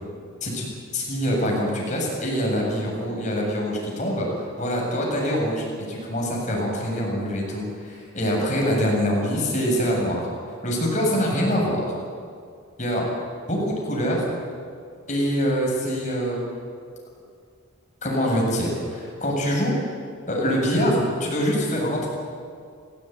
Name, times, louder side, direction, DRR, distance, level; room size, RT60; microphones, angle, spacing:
voice 1, 0.9-4.3 4.6-10.3 10.6-11.9 12.8-13.1 13.5-14.3 15.1-16.5 18.0-19.8 20.3-22.1, equal, 35° left, -2 dB, 7.9 m, -24 dB
29.0 x 18.0 x 9.6 m, 2.2 s
head